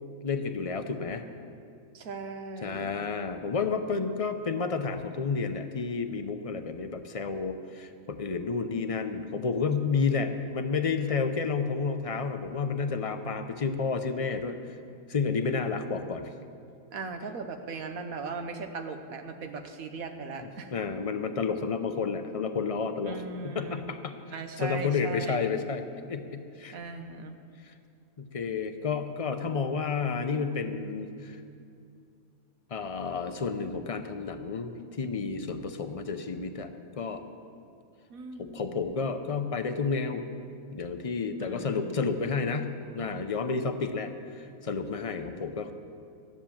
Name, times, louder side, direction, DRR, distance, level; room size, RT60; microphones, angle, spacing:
voice 1, 0.2-1.2 2.6-14.6 15.1-16.3 20.7-23.2 23.4-24.2 24.6-25.8 26.1-26.8 27.7-27.8 28.2-31.4 32.7-36.7 37.0-37.2 38.4-40.2 40.7-42.7 42.9-45.7, left 5 dB, 45° left, 7 dB, 0.4 m, -31 dB
voice 2, 1.9-2.9 16.9-20.7 23.0-23.8 24.3-25.5 26.7-27.4 38.1-38.6 41.4-42.2, right 4 dB, 75° right, 6 dB, 1.4 m, -38 dB
13.5 x 10.5 x 7.2 m, 2.4 s
omnidirectional pair, 1.5 m